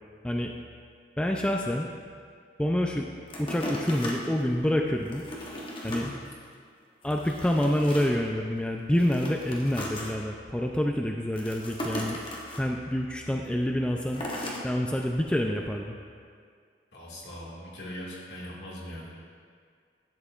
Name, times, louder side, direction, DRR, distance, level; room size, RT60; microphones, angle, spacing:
voice 1, 1.2-1.9 2.6-3.1 3.4-5.2 5.8-6.1 7.0-12.2 12.6-14.2 14.6-16.0, left 1 dB, 5° left, 1 dB, 0.3 m, -27 dB
sound 1, 3.3-4.6 5.1-6.1 6.5-6.6 7.0-8.3 8.9-10.1 11.3-12.6 14.1-14.6 15.2-15.3, left 1 dB, 30° left, 1.0 m, -37 dB
voice 2, 5.9-6.2 16.9-19.1, equal, 70° left, -5 dB, 1.9 m, -40 dB
11.5 x 7.7 x 2.4 m, 2.1 s
head